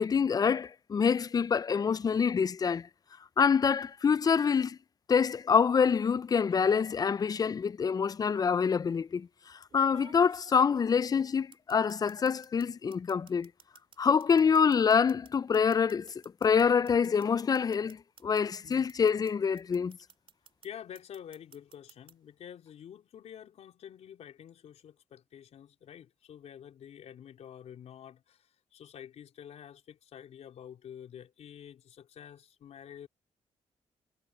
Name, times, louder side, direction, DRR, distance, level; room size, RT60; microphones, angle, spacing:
voice 1, 0.0-2.9 3.4-4.8 5.1-9.3 9.7-13.5 14.0-16.1 16.4-20.0, left 6 dB, 35° left, 0.4 m, -26 dB
sound 1, 6.5-6.9 8.1-8.2 9.7-12.7 12.9-19.3 19.6-20.7 20.9-22.1, right 6 dB, 50° right, 2.2 m, -55 dB
voice 2, 20.6-33.1, left 9 dB, 75° left, 4.1 m, -48 dB
cardioid pair, 80°, 11 cm